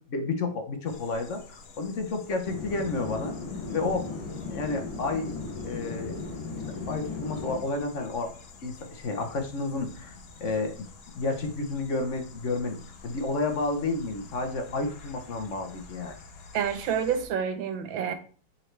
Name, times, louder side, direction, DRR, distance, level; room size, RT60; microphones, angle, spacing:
voice 1, 0.1-3.4 3.7-4.1 4.5-5.3 5.6-6.2 6.9-8.3 8.6-10.1 10.4-10.9 11.1-16.1, left 3 dB, 50° left, 5 dB, 0.9 m, -31 dB
sound 1, 0.9-17.3, left 4 dB, 85° left, 1.8 m, -49 dB
sound 2, 2.4-7.6, left 3 dB, 20° left, 2.0 m, -36 dB
voice 2, 16.5-18.1, right 8 dB, 75° right, 8 dB, 1.6 m, -28 dB
7.4 x 4.4 x 3.2 m, 0.41 s
omnidirectional pair, 2.2 m